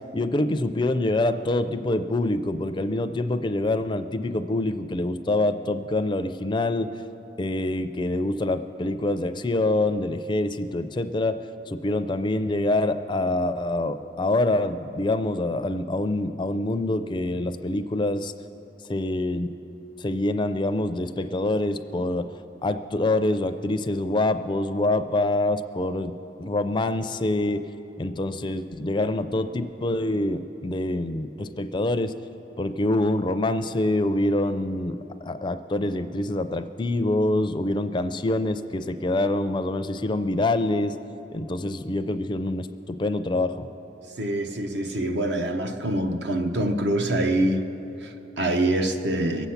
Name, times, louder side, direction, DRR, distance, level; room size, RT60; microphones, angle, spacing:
voice 1, 0.1-6.9 7.4-11.4 11.7-18.3 18.9-19.5 20.0-27.6 28.0-32.1 32.6-41.0 41.3-43.7, left 2 dB, 25° left, 0.4 m, -25 dB
voice 2, 44.2-47.7 48.0-49.5, right 1 dB, 70° right, 1.0 m, -25 dB
22.0 x 8.1 x 5.8 m
head